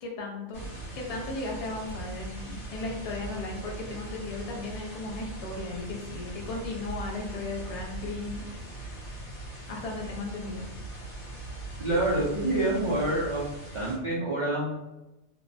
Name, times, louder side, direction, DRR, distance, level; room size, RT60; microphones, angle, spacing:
voice 1, 0.0-0.7 0.9-8.4 9.7-10.7, left 3 dB, 45° left, 0 dB, 0.5 m, -36 dB
sound 1, 0.5-14.0, right 2 dB, 80° left, 1.5 m, -40 dB
voice 2, 11.8-13.5 13.7-14.7, right 1 dB, 45° right, -7 dB, 0.4 m, -27 dB
3.0 x 2.0 x 2.6 m, 0.97 s
omnidirectional pair, 1.2 m